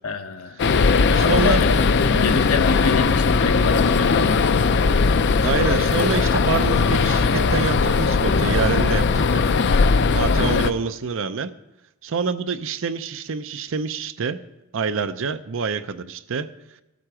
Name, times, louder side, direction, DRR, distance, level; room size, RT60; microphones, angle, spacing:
voice 1, 0.0-0.6 1.1-1.7 2.1-5.0, left 4 dB, 80° left, 7 dB, 1.0 m, -27 dB
sound 1, 0.6-10.7, left 4 dB, 55° left, 0.5 m, -19 dB
voice 2, 0.6-1.7 5.4-9.4 10.1-11.5 12.0-14.4 14.7-16.5, right 5 dB, 65° right, 12 dB, 0.6 m, -26 dB
15.5 x 7.6 x 4.9 m, 0.97 s
head